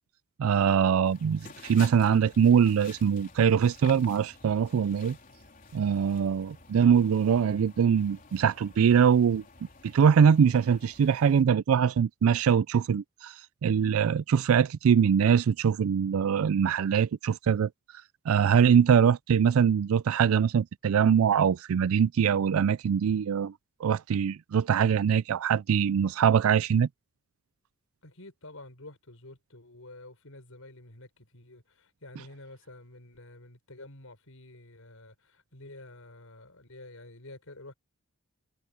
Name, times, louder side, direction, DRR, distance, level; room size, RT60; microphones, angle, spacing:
voice 1, 0.4-5.2 5.7-9.4 9.8-17.7 18.3-23.5 23.8-26.9, right 7 dB, 80° right, 0.4 m, -23 dB
sound 1, 1.1-11.4, left 4 dB, 40° left, 3.8 m, -51 dB
voice 2, 28.0-37.7, left 2 dB, 75° left, 5.5 m, -49 dB
head